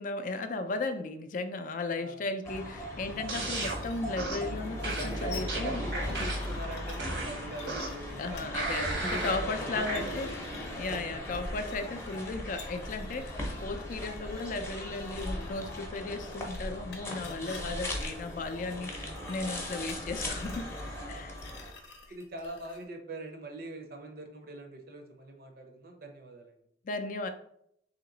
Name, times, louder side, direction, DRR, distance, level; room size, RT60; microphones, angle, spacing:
voice 1, 0.0-5.8 6.2-6.3 8.2-10.3 10.8-20.7 21.0-21.3 26.9-27.3, left 3 dB, 45° left, 9 dB, 0.4 m, -35 dB
voice 2, 1.9-2.2 5.0-8.5 8.7-10.3 10.9-11.3 17.4-17.7 18.7-18.8 21.7-26.5, right 1 dB, 55° right, 4 dB, 0.6 m, -43 dB
sound 1, 2.4-21.7, left 1 dB, 15° left, 0.6 m, -38 dB
sound 2, 3.1-22.9, left 5 dB, 80° left, 0.7 m, -52 dB
sound 3, 3.3-3.8 4.2-4.5 4.8-6.6 7.0-8.1 8.5-9.4 9.9-10.0, right 2 dB, 80° right, 1.0 m, -35 dB
3.0 x 2.9 x 3.8 m, 0.71 s
head